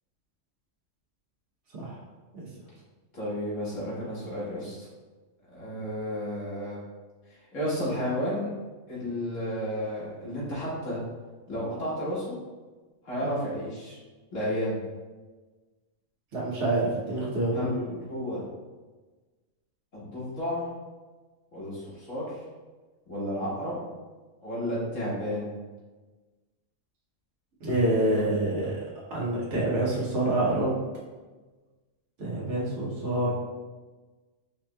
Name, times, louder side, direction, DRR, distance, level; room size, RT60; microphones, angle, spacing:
voice 1, 3.1-4.9 5.5-6.8 7.5-8.5 8.9-11.0 11.5-12.4 13.0-14.0 14.3-14.8 17.5-18.4 19.9-20.7 21.5-22.3 23.1-23.8 24.4-25.6 28.0-28.4, equal, 70° left, -8 dB, 1.7 m, -32 dB
voice 2, 16.3-17.7 27.6-28.8 29.1-30.7 32.2-33.3, right 1 dB, 65° right, -6 dB, 1.2 m, -27 dB
5.0 x 2.9 x 2.2 m, 1.3 s
omnidirectional pair, 1.4 m